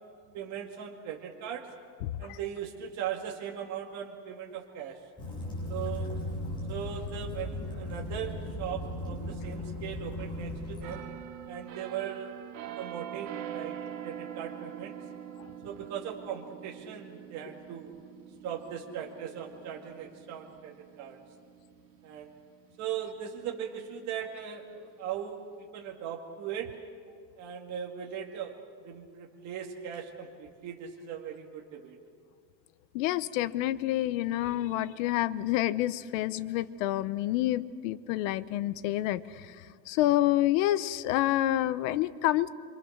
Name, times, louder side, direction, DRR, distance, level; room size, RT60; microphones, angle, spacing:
voice 1, 0.3-1.7 2.2-5.0 5.7-6.1 6.7-11.0 11.5-12.4 12.7-13.8 14.0-14.9 15.6-17.9 18.4-21.2 22.0-22.3 22.8-26.7 27.4-28.6 28.8-32.0, right 9 dB, 45° right, 0 dB, 2.2 m, -39 dB
voice 2, 2.0-2.4 15.4-15.5 32.9-39.6 39.9-42.5, left 14 dB, 80° left, 15 dB, 1.0 m, -28 dB
Waves surf / Splash splatter / Trickle dribble, 5.2-11.0, left 1 dB, 10° left, 6.6 m, -37 dB
sound 1, 10.8-22.4 22.8-23.0, right 10 dB, 90° right, 2.7 m, -44 dB
27.0 x 25.5 x 6.6 m, 2.1 s
cardioid pair, 170°, 38 cm